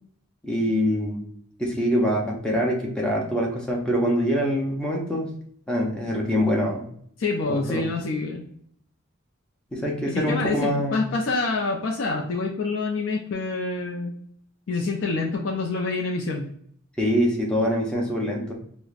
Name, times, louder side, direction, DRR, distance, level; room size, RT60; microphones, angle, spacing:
voice 1, 0.4-1.2 1.6-5.3 5.7-6.8 7.5-7.8 9.7-11.1 17.0-18.5, equal, 5° left, -2 dB, 0.6 m, -24 dB
voice 2, 7.2-8.5 10.0-14.1 14.7-16.5, left 3 dB, 65° left, -1 dB, 0.4 m, -27 dB
4.7 x 2.1 x 2.4 m, 0.64 s
head